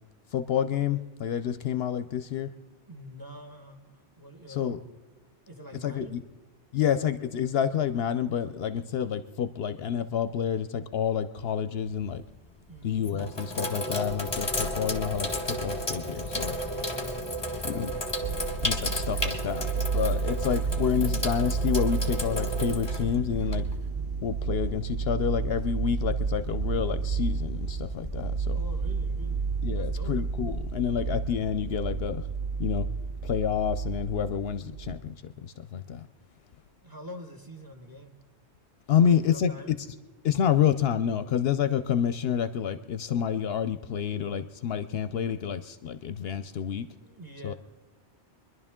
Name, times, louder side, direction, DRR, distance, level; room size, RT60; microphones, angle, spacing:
voice 1, 0.3-2.5 4.5-4.8 5.8-6.2 6.7-12.2 12.8-16.6 17.6-18.0 18.6-19.7 19.9-23.6 24.2-28.6 29.6-32.2 32.6-32.9 33.2-35.2 35.4-36.0 38.9-39.5 40.2-46.9 47.4-47.5, left 8 dB, 65° left, 10 dB, 0.8 m, -28 dB
voice 2, 2.9-4.8 5.5-6.2 12.7-13.0 16.6-17.2 28.4-30.2 36.8-38.2 39.0-39.7 47.0-47.5, equal, 20° right, 3 dB, 1.3 m, -45 dB
Sink (filling or washing), 11.9-12.3 12.9-23.9, equal, 25° left, 1.1 m, -33 dB
sound 1, 14.0-32.4, left 2 dB, 5° right, 0.3 m, -42 dB
sound 2, 18.2-35.0, right 5 dB, 60° right, 0.6 m, -31 dB
24.0 x 11.0 x 3.7 m, 1.2 s
omnidirectional pair, 1.1 m